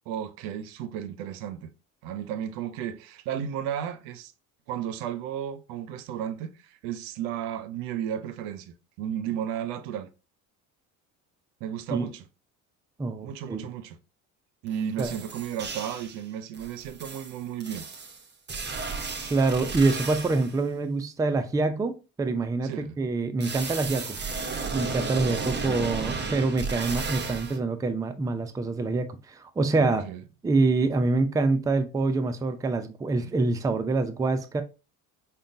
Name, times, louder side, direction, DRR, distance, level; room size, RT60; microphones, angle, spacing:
voice 1, 0.1-1.7 2.0-4.3 4.7-10.1 11.6-12.3 13.2-14.0 14.6-17.9 22.6-23.0 29.8-30.2 33.2-33.3, right 9 dB, 75° right, 0.6 m, -34 dB
voice 2, 13.0-13.6 15.0-15.1 19.3-24.2 24.7-30.1 30.4-34.6, right 3 dB, 10° right, 0.4 m, -26 dB
sound 1, 14.7-14.8 15.0-16.2 16.5-20.6 23.4-27.6, right 4 dB, 25° right, 0.8 m, -34 dB
5.0 x 2.3 x 2.5 m
hypercardioid pair, 70°, 42 cm